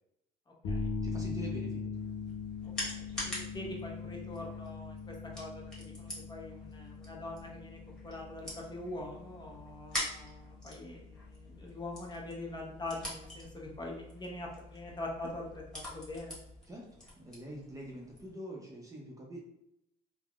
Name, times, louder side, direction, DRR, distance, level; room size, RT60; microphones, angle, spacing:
sound 1, 0.6-16.6, left 4 dB, 85° left, 0.6 m, -42 dB
voice 1, 1.0-1.9 16.7-19.4, equal, 20° right, -1 dB, 0.6 m, -45 dB
sound 2, 1.9-18.3, left 1 dB, 5° left, 1.2 m, -45 dB
voice 2, 2.8-16.4, left 2 dB, 25° left, -1 dB, 0.7 m, -43 dB
3.4 x 2.1 x 2.3 m, 0.82 s
cardioid pair, 110°, 17 cm